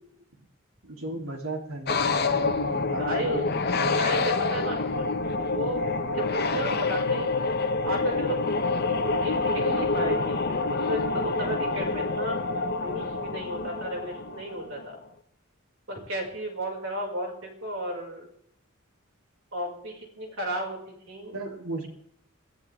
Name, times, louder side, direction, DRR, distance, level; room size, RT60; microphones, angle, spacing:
voice 1, 0.8-4.2 21.3-21.9, right 2 dB, 85° right, 2 dB, 3.3 m, -36 dB
sound 1, 1.9-14.8, left 3 dB, 45° left, 0.8 m, -27 dB
voice 2, 3.0-5.1 5.5-7.3 7.8-12.4 12.8-15.0 15.9-18.3 19.5-21.3, right 1 dB, 70° right, 0 dB, 5.6 m, -34 dB
22.5 x 14.5 x 3.6 m, 0.71 s
head